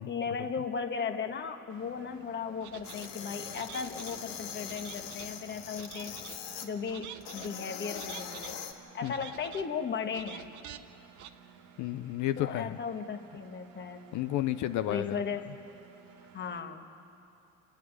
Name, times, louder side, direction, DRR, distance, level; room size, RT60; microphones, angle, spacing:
voice 1, 0.0-6.2 6.6-8.6 8.9-10.5 12.4-14.0 14.9-15.5 16.3-16.8, left 6 dB, 30° left, 6 dB, 1.4 m, -36 dB
Engine, 1.7-16.6, right 7 dB, 85° right, 1.6 m, -57 dB
sound 1, 2.6-3.1 3.5-4.2 4.6-5.3 5.7-6.4 6.8-7.5 7.9-8.5 9.0-9.7 10.1-10.8 11.2-11.3, right 10 dB, 50° right, 0.9 m, -47 dB
sound 2, 2.8-6.7 7.2-8.7, left 8 dB, 65° left, 2.2 m, -42 dB
voice 2, 11.8-12.8 14.1-15.2, left 14 dB, 50° left, 11 dB, 0.6 m, -31 dB
29.0 x 10.5 x 9.6 m, 2.7 s
supercardioid pair, 120°, 38 cm